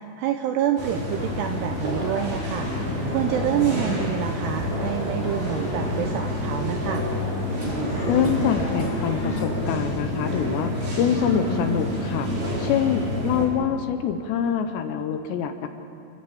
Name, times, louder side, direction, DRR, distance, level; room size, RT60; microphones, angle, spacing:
voice 1, 0.0-2.7 3.1-7.1, right 11 dB, 85° right, 6 dB, 2.4 m, -27 dB
sound 1, 0.8-13.5, left 1 dB, 45° right, 5.7 m, -28 dB
sound 2, 1.1-9.5, left 1 dB, 15° left, 2.1 m, -38 dB
voice 2, 8.1-12.3 12.6-15.7, left 8 dB, 75° left, 8 dB, 2.8 m, -25 dB
29.5 x 14.0 x 7.7 m, 2.7 s
omnidirectional pair, 5.6 m